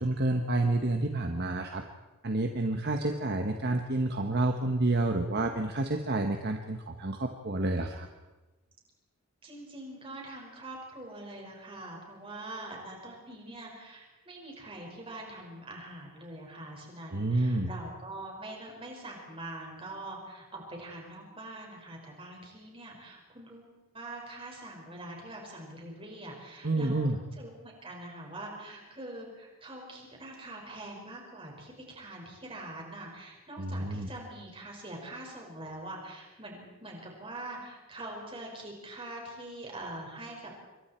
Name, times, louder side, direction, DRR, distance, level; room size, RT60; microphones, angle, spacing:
voice 1, 0.0-1.8 2.2-8.1 17.1-17.7 26.6-27.2 33.6-34.1, right 2 dB, 45° right, 5 dB, 1.2 m, -29 dB
voice 2, 9.4-40.5, right 1 dB, 25° right, 0 dB, 5.5 m, -44 dB
27.0 x 23.5 x 4.5 m, 1.2 s
head